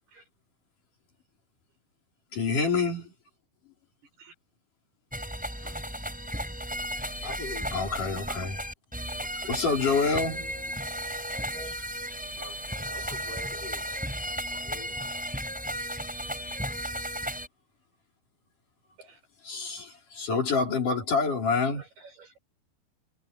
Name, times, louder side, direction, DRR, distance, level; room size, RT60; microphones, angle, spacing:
voice 1, 2.3-3.1 5.6-5.7 7.7-8.6 9.5-10.7 19.4-21.8, left 4 dB, 55° left, 5.8 m, -27 dB
sound 1, 5.1-17.5, equal, ahead, 5.6 m, -34 dB
voice 2, 7.2-7.8 12.4-14.0 14.5-15.1, left 3 dB, 25° left, 6.0 m, -44 dB
voice 3, 9.2-9.7 11.5-12.0 12.9-13.4 13.8-14.0 14.3-14.5 15.7-15.9 19.0-19.2 21.6-22.4, right 4 dB, 80° right, 9.4 m, -51 dB
omnidirectional pair, 4.5 m